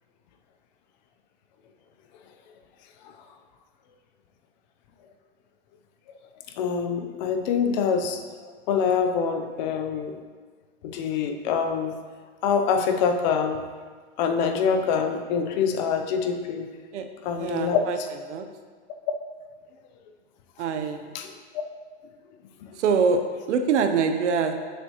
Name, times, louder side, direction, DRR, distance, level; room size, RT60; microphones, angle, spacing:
voice 1, 6.6-8.2 8.7-10.2 10.8-12.0 12.4-13.6 14.2-16.7 17.2-18.1 21.1-21.6 22.6-22.8, left 6 dB, 40° left, 6 dB, 0.6 m, -25 dB
voice 2, 17.4-18.0 18.3-18.4 20.6-21.0 22.8-23.2 23.5-24.5, right 5 dB, 80° right, 7 dB, 0.9 m, -23 dB
7.1 x 6.7 x 3.0 m, 1.5 s
supercardioid pair, 150°, 35 cm